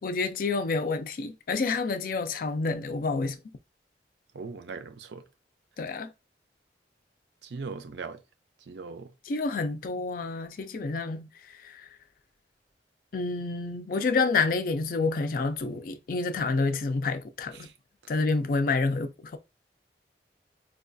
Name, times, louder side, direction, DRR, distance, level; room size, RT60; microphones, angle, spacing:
voice 1, 0.0-3.4 5.8-6.1 9.3-11.3 11.6-11.8 13.1-17.7 18.1-19.4, left 3 dB, 50° left, 0.4 m, -28 dB
voice 2, 4.3-5.2 7.4-8.2 8.7-9.1 17.5-17.7, right 4 dB, 75° right, 0.5 m, -39 dB
4.6 x 2.3 x 2.5 m
head